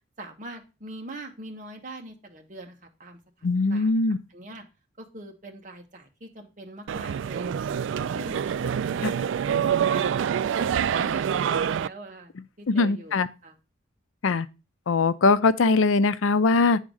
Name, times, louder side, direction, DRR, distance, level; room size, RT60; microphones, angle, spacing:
voice 1, 0.2-4.0 4.3-4.6 5.0-7.7 8.1-9.1 9.4-10.1 10.6-13.5, right 1 dB, 40° right, 1.4 m, -41 dB
voice 2, 3.4-4.2 12.7-13.3 14.2-14.5 14.9-16.8, left 3 dB, 90° left, 0.5 m, -21 dB
sound 1, 6.9-11.9, right 8 dB, 70° right, 0.3 m, -26 dB
9.5 x 3.7 x 6.3 m
head